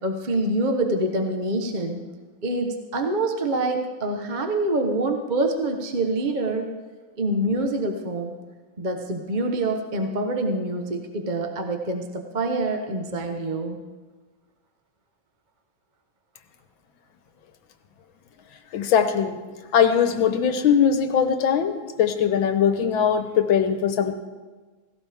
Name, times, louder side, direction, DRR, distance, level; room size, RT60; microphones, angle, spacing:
voice 1, 0.0-2.0 2.4-6.7 7.2-8.3 8.8-13.8, right 2 dB, 30° right, 4 dB, 0.9 m, -26 dB
voice 2, 18.7-19.4 19.7-24.1, left 7 dB, 75° left, 8 dB, 1.7 m, -21 dB
17.0 x 16.5 x 3.5 m, 1.3 s
omnidirectional pair, 2.2 m